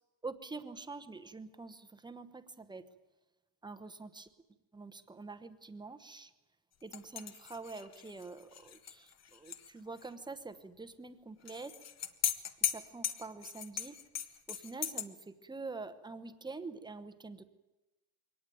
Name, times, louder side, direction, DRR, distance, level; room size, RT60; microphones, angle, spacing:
voice 1, 0.2-2.9 3.6-4.3 4.7-6.3 6.8-11.8 12.6-14.0 14.5-17.4, right 3 dB, 10° right, 10 dB, 0.9 m, -46 dB
sound 1, 6.9-9.7 10.0-10.1 11.5-15.1, left 9 dB, 40° left, 1.2 m, -38 dB
23.0 x 18.5 x 9.2 m, 1.1 s
cardioid pair, 170°, 42 cm